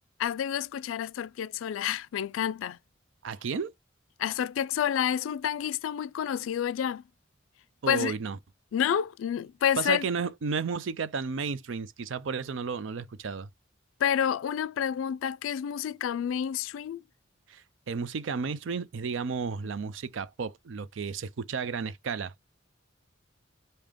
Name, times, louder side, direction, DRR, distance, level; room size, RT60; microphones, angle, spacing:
voice 1, 0.2-2.8 4.2-7.0 7.9-8.1 8.7-10.0 14.0-17.0, left 9 dB, 90° left, 0.3 m, -29 dB
voice 2, 3.2-3.7 7.8-8.4 9.8-13.5 17.5-22.4, right 5 dB, 70° right, 0.5 m, -33 dB
5.0 x 2.8 x 3.5 m
head